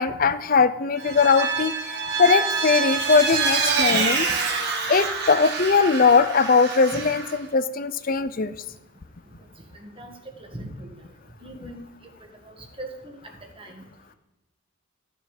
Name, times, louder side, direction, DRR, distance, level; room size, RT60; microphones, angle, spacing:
voice 1, 0.0-1.7 2.2-4.3 4.9-8.6, left 5 dB, 40° left, 13 dB, 0.5 m, -20 dB
Vehicle, 1.0-7.4, right 4 dB, 50° right, 2.0 m, -26 dB
voice 2, 9.7-10.9 11.4-11.9 12.4-13.2 13.6-13.8, right 1 dB, 25° right, 3 dB, 1.7 m, -40 dB
14.0 x 6.9 x 5.1 m, 1.1 s
head